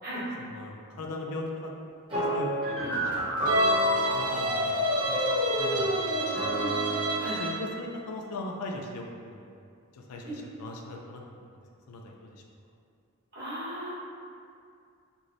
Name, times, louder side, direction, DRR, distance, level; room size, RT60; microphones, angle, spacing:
voice 1, 0.4-1.7 2.1-4.7 5.0-6.6 7.4-9.5 9.9-11.4 11.9-12.4, left 2 dB, 90° left, 0 dB, 0.4 m, -40 dB
sound 1, 2.1-7.3, equal, 25° right, 0.8 m, -29 dB
Bowed string instrument, 3.5-7.7, right 1 dB, 85° right, 0.5 m, -30 dB
voice 2, 13.3-13.9, right 1 dB, 45° right, -11 dB, 1.2 m, -37 dB
3.1 x 2.6 x 2.6 m, 2.3 s
head